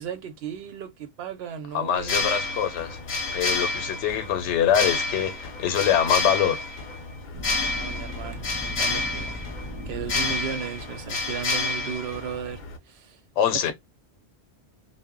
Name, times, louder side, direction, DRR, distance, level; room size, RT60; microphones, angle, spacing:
voice 1, 0.0-2.4 7.7-8.4 8.8-9.4 9.8-12.6 12.9-13.2 13.6-13.7, right 7 dB, 70° right, 0.8 m, -35 dB
voice 2, 1.7-6.6 13.4-13.7, left 9 dB, 85° left, 0.9 m, -24 dB
sound 1, 2.0-12.8, left 3 dB, 50° left, 0.7 m, -29 dB
sound 2, 7.3-11.1, equal, 30° right, 0.5 m, -38 dB
2.1 x 2.0 x 3.5 m
omnidirectional pair, 1.2 m